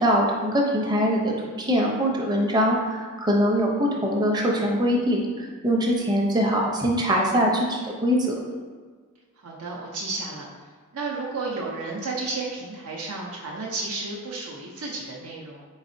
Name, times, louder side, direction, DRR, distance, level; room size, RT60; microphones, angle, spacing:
voice 1, 0.0-8.4, equal, 20° right, -1 dB, 0.6 m, -23 dB
voice 2, 9.4-10.5 10.9-15.6, right 3 dB, 75° right, -3 dB, 0.6 m, -32 dB
4.0 x 4.0 x 2.6 m, 1.5 s
head